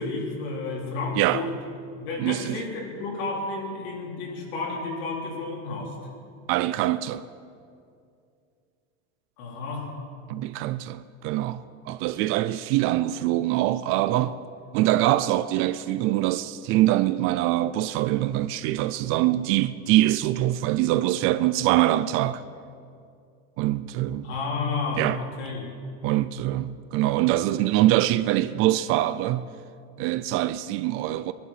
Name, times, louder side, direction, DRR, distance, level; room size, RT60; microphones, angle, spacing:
voice 1, 0.0-1.5 2.0-5.9 9.4-9.9 24.2-25.7, left 3 dB, 65° left, 3.9 m, -31 dB
voice 2, 2.2-2.6 6.5-7.2 10.3-14.3 14.7-22.4 23.6-24.3 25.0-25.2 26.0-29.5 30.0-31.3, right 15 dB, 40° right, 0.4 m, -24 dB
21.0 x 11.5 x 5.8 m
cardioid pair, 170°, 32 cm